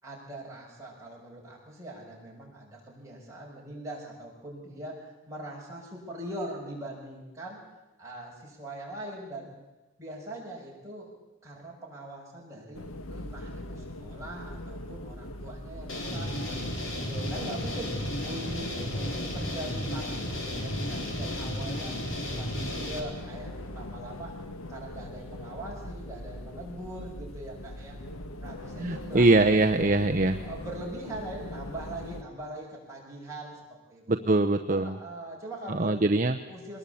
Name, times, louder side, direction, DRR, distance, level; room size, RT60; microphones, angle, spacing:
voice 1, 0.0-7.6 8.0-9.6 10.0-11.1 11.4-12.8 13.1-16.5 16.9-21.9 22.3-24.3 24.7-28.0 28.4-30.0 30.4-33.6 33.9-34.3 34.7-36.0 36.5-36.8, right 1 dB, 15° right, -4 dB, 6.7 m, -41 dB
Wind Through The Door, 12.7-32.2, left 1 dB, 80° left, 1.3 m, -41 dB
sound 1, 15.9-23.0, left 1 dB, 65° left, 4.1 m, -34 dB
voice 2, 28.8-30.3 34.1-34.9 35.7-36.4, right 2 dB, 35° right, 6 dB, 0.7 m, -23 dB
22.5 x 20.0 x 8.6 m, 1.1 s
head